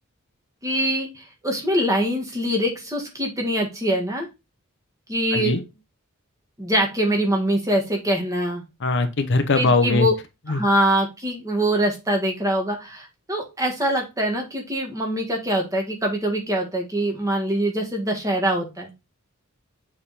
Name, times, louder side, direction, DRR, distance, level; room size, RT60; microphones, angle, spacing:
voice 1, 0.6-4.3 5.1-5.6 6.6-8.6 9.5-10.1 10.5-18.9, right 1 dB, 15° right, 1.7 m, -23 dB
voice 2, 8.8-10.1 10.5-10.6, left 3 dB, 60° left, 0.8 m, -20 dB
6.7 x 3.6 x 4.1 m
head